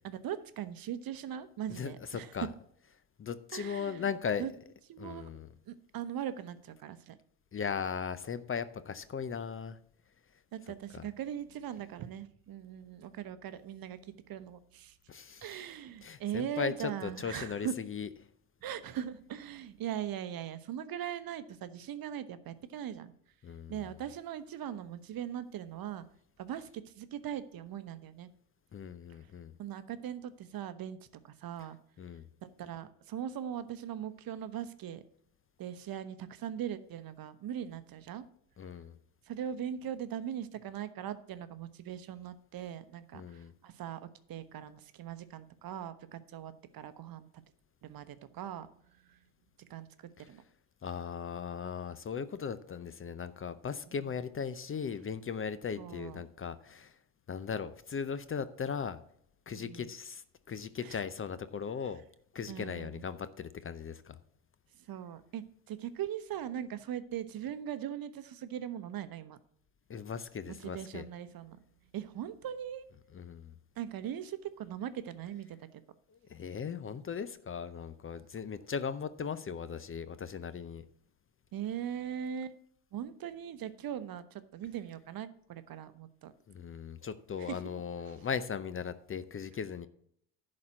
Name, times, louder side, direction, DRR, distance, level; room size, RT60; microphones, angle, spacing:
voice 1, 0.0-2.3 3.5-4.1 4.4-4.5 4.9-5.3 5.7-7.2 10.5-14.9 15.4-17.7 18.6-23.1 23.7-26.0 26.4-28.3 29.6-31.0 31.2-31.8 32.4-35.0 35.6-38.3 39.3-47.4 47.8-48.7 49.1-49.2 49.7-49.9 50.3-50.4 55.8-56.2 59.5-59.9 60.8-61.0 62.5-63.0 64.9-69.4 70.5-71.6 71.9-72.9 73.8-75.8 81.5-82.6 82.9-86.3 87.4-87.6, right 10 dB, 45° right, 13 dB, 1.0 m, -40 dB
voice 2, 1.7-2.5 3.2-4.4 5.0-5.5 7.5-9.8 10.9-11.0 15.1-15.6 16.0-18.1 23.4-23.8 28.7-29.5 32.0-32.2 38.6-39.0 43.1-43.5 50.2-50.3 50.8-57.0 57.3-59.0 59.5-62.0 62.3-64.2 69.9-71.0 73.1-73.5 76.1-80.8 86.5-89.9, left 6 dB, 30° left, 14 dB, 0.6 m, -38 dB
10.5 x 4.3 x 7.5 m, 0.68 s
hypercardioid pair, 70°, 47 cm